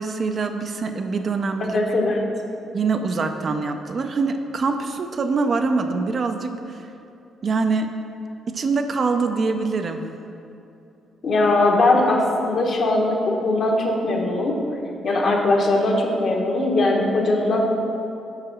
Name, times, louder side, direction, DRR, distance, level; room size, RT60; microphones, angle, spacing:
voice 1, 0.0-1.8 2.7-6.9 7.4-7.9 8.5-10.0, right 4 dB, 45° right, 6 dB, 0.5 m, -24 dB
voice 2, 1.7-2.2 11.2-14.5 15.0-17.6, left 2 dB, 55° left, 0 dB, 1.2 m, -20 dB
5.6 x 4.8 x 6.2 m, 2.8 s
cardioid pair, 90°, 0 cm